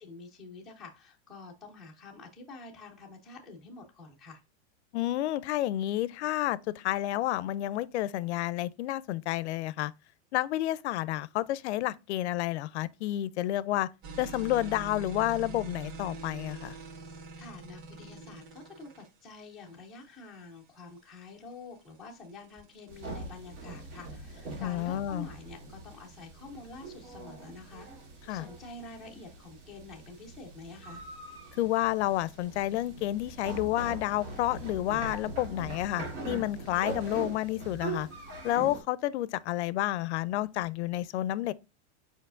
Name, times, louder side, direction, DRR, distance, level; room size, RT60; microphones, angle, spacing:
voice 1, 0.0-4.4 17.4-28.0 28.3-31.0, left 3 dB, ahead, 0.3 m, -48 dB
voice 2, 4.9-9.9 10.3-13.9 14.2-16.7 24.6-25.3 28.3-28.4 31.6-38.1 38.4-41.5, left 14 dB, 75° left, 0.5 m, -30 dB
sound 1, 14.0-33.7, right 4 dB, 35° right, 1.6 m, -48 dB
sound 2, 22.9-38.8, right 3 dB, 85° right, 2.8 m, -42 dB
4.8 x 4.5 x 2.4 m
supercardioid pair, 165°, 34 cm